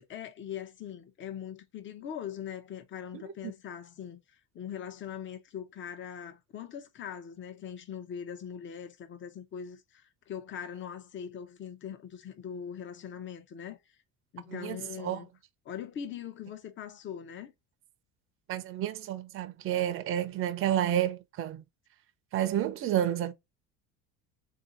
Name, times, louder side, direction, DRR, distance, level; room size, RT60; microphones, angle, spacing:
voice 1, 0.0-4.2 4.5-13.8 14.3-15.3 15.6-17.5, left 8 dB, 35° left, 0.8 m, -41 dB
voice 2, 18.5-21.6 22.3-23.3, right 11 dB, 40° right, 0.6 m, -30 dB
3.8 x 2.8 x 3.8 m
cardioid pair, 145°, 35 cm